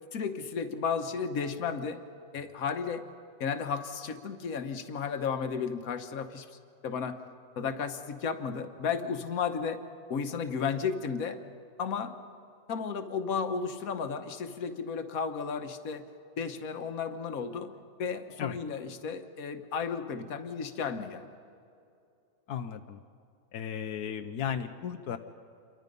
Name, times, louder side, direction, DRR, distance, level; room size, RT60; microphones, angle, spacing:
voice 1, 0.1-2.0 2.3-3.0 3.4-7.2 7.6-9.8 10.1-11.4 11.8-12.2 12.7-16.1 16.4-21.3, left 6 dB, 65° left, 8 dB, 1.6 m, -33 dB
voice 2, 22.5-23.0 23.5-25.2, left 8 dB, 90° left, 6 dB, 1.4 m, -35 dB
28.0 x 23.0 x 5.4 m, 2.6 s
omnidirectional pair, 1.6 m